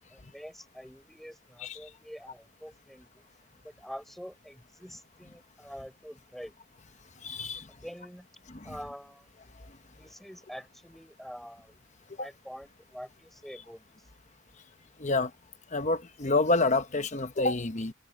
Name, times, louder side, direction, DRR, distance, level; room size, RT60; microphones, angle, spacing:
voice 1, 0.1-3.3 3.6-6.5 7.7-8.3 8.6-9.3 10.0-11.8 12.2-13.8, equal, ahead, 5.8 m, -46 dB
voice 2, 7.2-7.7 8.5-8.8 12.2-12.3 15.0-15.3 15.7-17.9, left 3 dB, 35° left, 1.1 m, -28 dB
head